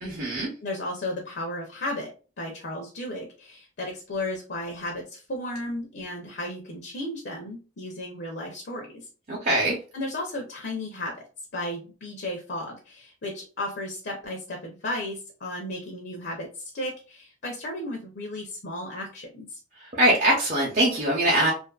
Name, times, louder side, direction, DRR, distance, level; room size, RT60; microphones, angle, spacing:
voice 1, 0.0-0.5 9.3-9.8 20.0-21.5, right 1 dB, 40° right, 0.7 m, -22 dB
voice 2, 0.6-9.1 9.9-11.2 11.5-19.6, left 1 dB, 60° left, 0.5 m, -34 dB
2.5 x 2.5 x 2.3 m
head